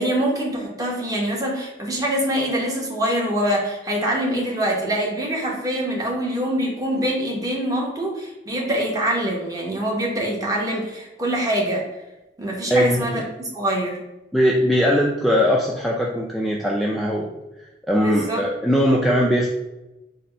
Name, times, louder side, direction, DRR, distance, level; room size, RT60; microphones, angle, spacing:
voice 1, 0.0-11.8 12.4-14.0 18.0-18.4, right 1 dB, 20° right, -2 dB, 0.8 m, -24 dB
voice 2, 12.7-13.2 14.3-17.3 17.9-19.5, equal, ahead, -4 dB, 0.3 m, -20 dB
4.0 x 2.0 x 4.3 m, 1.0 s
head